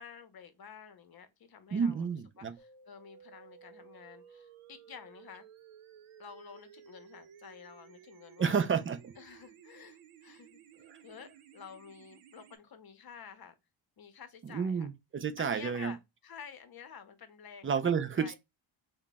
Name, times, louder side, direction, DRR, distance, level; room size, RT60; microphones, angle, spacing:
voice 1, 0.0-2.1 2.4-5.4 6.2-8.7 9.2-10.6 11.0-13.5 14.0-14.9 15.4-18.4, left 7 dB, 50° left, 0.8 m, -51 dB
voice 2, 1.7-2.5 8.4-9.1 10.9-11.0 14.4-15.9 17.6-18.4, right 6 dB, 30° right, 0.3 m, -31 dB
sound 1, 2.6-12.6, right 8 dB, 85° right, 0.7 m, -56 dB
3.3 x 2.2 x 3.9 m
cardioid pair, 105°, 48 cm